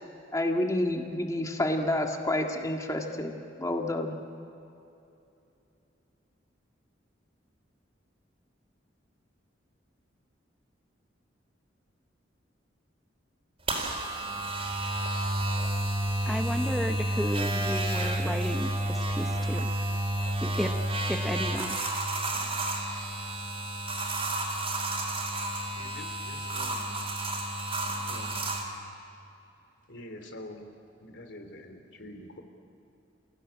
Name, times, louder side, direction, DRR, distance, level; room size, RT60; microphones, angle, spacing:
voice 1, 0.3-4.2, left 1 dB, 20° left, 2 dB, 1.8 m, -29 dB
sound 1, 13.7-28.6, right 1 dB, 30° right, 4.1 m, -30 dB
voice 2, 16.3-19.7 20.4-20.8 21.1-21.8, equal, ahead, 5 dB, 0.8 m, -33 dB
voice 3, 25.7-27.1 28.0-28.5 29.9-30.7 31.0-32.4, left 1 dB, 75° left, 6 dB, 3.2 m, -46 dB
28.0 x 17.0 x 9.9 m, 2.8 s
head